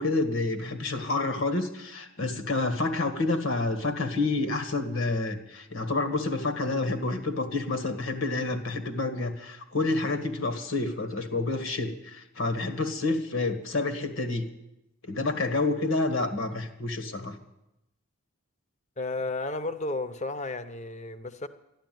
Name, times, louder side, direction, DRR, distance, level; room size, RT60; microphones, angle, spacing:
voice 1, 0.0-14.5 15.0-17.3, left 2 dB, 70° left, 8 dB, 1.9 m, -29 dB
voice 2, 19.0-21.5, left 2 dB, 35° left, 11 dB, 0.8 m, -33 dB
13.0 x 12.0 x 9.3 m, 0.90 s
head